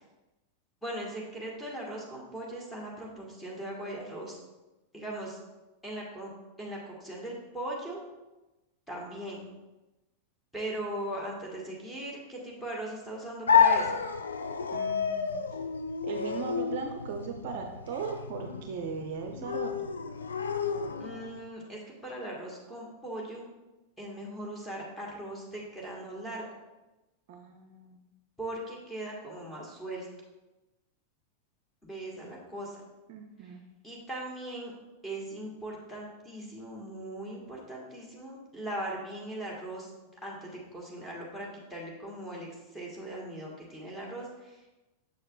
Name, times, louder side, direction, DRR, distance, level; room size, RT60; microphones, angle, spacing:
voice 1, 0.8-4.4 4.9-5.4 5.8-6.3 6.6-8.0 8.9-9.5 10.5-14.0 21.0-23.4 24.0-26.4 28.4-30.1 31.8-32.8 33.8-34.7 35.0-39.9 40.2-44.8, right 1 dB, 5° left, -3 dB, 1.6 m, -39 dB
sound 1, 13.5-21.4, left 6 dB, 70° left, 0.4 m, -29 dB
voice 2, 14.7-15.4 16.0-19.7 27.3-28.0 33.1-33.6, right 5 dB, 50° right, 4 dB, 0.6 m, -38 dB
6.8 x 6.4 x 2.4 m, 1.1 s
figure-of-eight pair, 90°, 0 cm